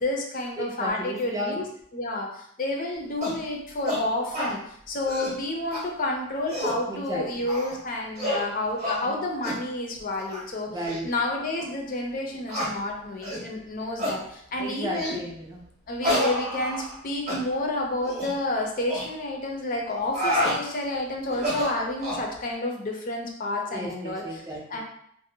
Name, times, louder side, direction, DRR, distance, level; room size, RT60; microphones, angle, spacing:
voice 1, 0.0-1.6 1.9-4.6 4.9-10.7 11.0-15.2 15.9-24.2 24.7-24.8, left 2 dB, 45° left, 1 dB, 0.4 m, -30 dB
voice 2, 0.6-1.6 6.9-7.5 9.0-9.2 10.7-11.1 14.6-15.6 23.7-24.8, equal, 15° right, -2 dB, 0.3 m, -34 dB
sound 1, 3.2-3.4 3.9-4.0 4.3-4.5 5.0-5.4 5.7-5.8 6.3-6.8 7.5-7.8 8.2-8.5 8.8-9.0 9.4-9.6 10.2-10.4 10.8-11.0 11.6-11.7 12.5-12.7 13.2-13.4 14.0-14.2 14.9-15.2 16.0-17.0 17.3-17.4 18.0-18.3 18.9-19.1 19.9-20.6 21.3-22.2, equal, 35° right, 0.7 m, -28 dB
2.5 x 2.0 x 2.7 m, 0.69 s
head